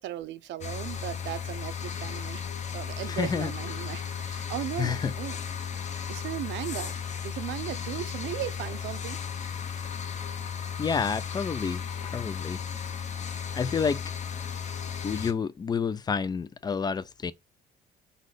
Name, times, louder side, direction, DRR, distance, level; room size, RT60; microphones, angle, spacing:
voice 1, 0.0-5.4 6.1-7.0 7.2-9.2, right 12 dB, 75° right, 0.7 m, -37 dB
sound 1, 0.6-15.3, left 7 dB, 40° left, 0.9 m, -35 dB
voice 2, 3.1-3.5 4.8-5.1 10.8-12.6 13.5-14.0 15.0-17.3, left 6 dB, 20° left, 0.4 m, -29 dB
5.1 x 4.0 x 4.9 m
cardioid pair, 155°, 19 cm